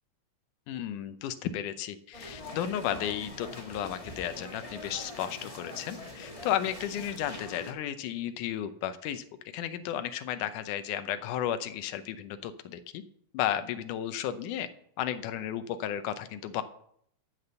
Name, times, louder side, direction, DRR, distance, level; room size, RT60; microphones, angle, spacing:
voice 1, 0.7-9.2 9.5-13.0 13.3-14.7 15.0-16.6, left 10 dB, 80° left, 11 dB, 2.3 m, -33 dB
sound 1, 2.1-7.7, left 1 dB, 20° left, 1.0 m, -44 dB
13.0 x 6.1 x 6.7 m, 0.68 s
omnidirectional pair, 3.7 m